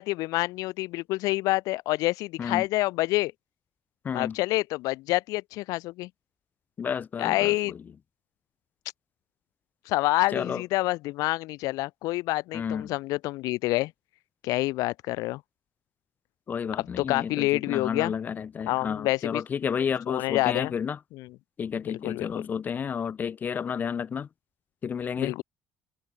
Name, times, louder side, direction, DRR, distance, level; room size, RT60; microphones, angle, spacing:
voice 1, 0.0-3.3 4.1-6.1 7.2-7.7 9.9-13.9 14.4-15.4 16.8-18.1 18.7-19.4 20.1-20.7 21.1-21.4 21.9-22.3 25.2-25.4, left 19 dB, 75° left, 1.5 m, -27 dB
voice 2, 6.8-7.5 10.3-10.6 12.5-12.9 16.5-21.0 21.6-24.3 24.8-25.4, left 7 dB, 30° left, 0.9 m, -31 dB
cardioid pair, 155°, 6 cm